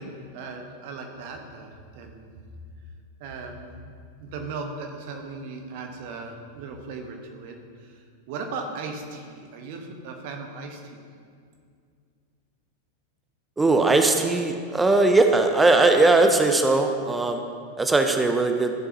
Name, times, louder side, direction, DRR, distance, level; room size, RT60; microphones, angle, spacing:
voice 1, 0.0-2.3 3.2-3.9 4.2-11.0, right 4 dB, 50° right, 4 dB, 1.1 m, -37 dB
voice 2, 13.6-17.4 17.8-18.7, right 2 dB, 10° right, 6 dB, 0.6 m, -19 dB
13.5 x 7.1 x 2.9 m, 2.2 s
figure-of-eight pair, 90°, 0 cm